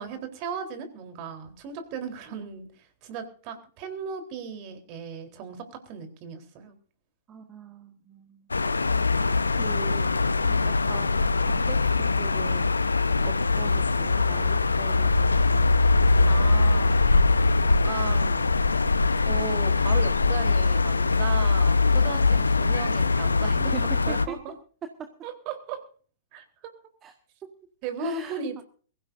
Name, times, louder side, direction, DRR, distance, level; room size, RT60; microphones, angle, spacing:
voice 1, 0.0-2.7 3.0-6.7 10.4-10.6 16.3-17.0 17.8-18.5 19.2-24.5 25.2-25.8 26.3-26.7 27.8-28.6, right 6 dB, 40° right, 7 dB, 3.9 m, -36 dB
voice 2, 7.3-8.5 8.9-10.1 10.6-12.8 13.2-15.8 23.6-24.4 27.0-27.1 28.0-28.6, right 7 dB, 25° right, 6 dB, 1.7 m, -42 dB
sound 1, 8.5-24.3, left 3 dB, 85° left, 1.0 m, -22 dB
23.0 x 15.5 x 2.7 m, 0.43 s
figure-of-eight pair, 115°, 0 cm